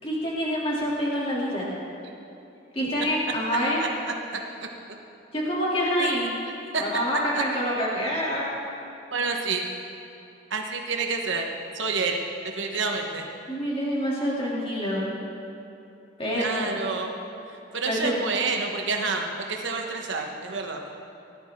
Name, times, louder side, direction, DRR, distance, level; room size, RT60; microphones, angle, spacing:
voice 1, 0.0-1.7 2.7-3.8 5.3-6.3 6.8-8.5 13.5-15.1 16.2-16.8 17.9-18.1, equal, 30° left, -6 dB, 2.8 m, -26 dB
voice 2, 6.0-6.3 6.7-6.8 7.3-7.4 9.1-9.7 10.5-11.5 11.7-13.3 16.3-17.1 17.5-20.8, right 4 dB, 65° right, 2 dB, 1.0 m, -29 dB
18.5 x 11.5 x 3.7 m, 2.9 s
head